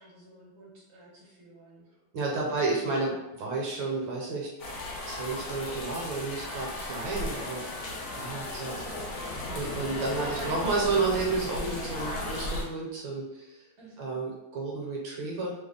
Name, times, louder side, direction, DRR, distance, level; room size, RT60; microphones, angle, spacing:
voice 1, 0.0-1.8 2.3-2.5 2.9-3.2 8.6-9.1 10.3-10.7 13.8-14.2, right 1 dB, 25° right, -6 dB, 0.6 m, -48 dB
voice 2, 2.1-3.1 3.4-4.5 5.0-7.8 8.2-8.8 9.5-13.6 14.0-15.5, right 3 dB, 70° right, -2 dB, 1.4 m, -31 dB
sound 1, 4.6-12.6, left 1 dB, 70° left, 0.8 m, -36 dB
3.4 x 2.0 x 3.8 m, 0.93 s
omnidirectional pair, 2.3 m